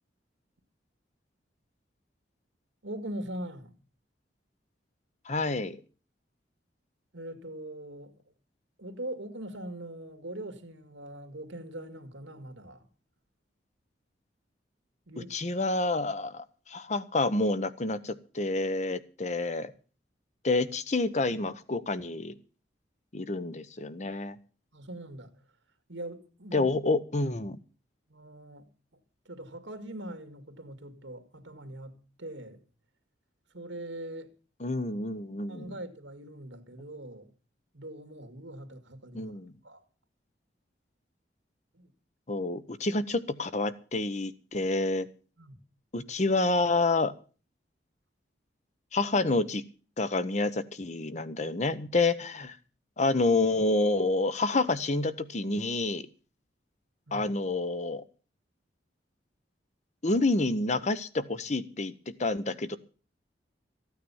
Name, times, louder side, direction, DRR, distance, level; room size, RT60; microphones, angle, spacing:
voice 1, 2.8-3.7 7.1-8.1 8.8-12.9 15.1-15.3 24.7-25.3 25.9-26.7 28.1-28.7 29.3-32.6 33.5-34.3 35.5-37.3 37.7-39.3 39.6-39.8 41.7-41.9 45.4-45.6 57.1-57.3, right 1 dB, 90° right, 2.2 m, -42 dB
voice 2, 5.3-5.8 15.3-19.7 20.4-22.3 23.1-24.4 26.5-27.6 34.6-35.7 39.1-39.5 42.3-45.1 45.9-47.1 48.9-49.6 50.0-52.6 53.0-56.0 57.1-58.0 60.0-61.9 62.2-62.8, left 2 dB, 40° left, 0.9 m, -28 dB
14.5 x 9.3 x 7.1 m
head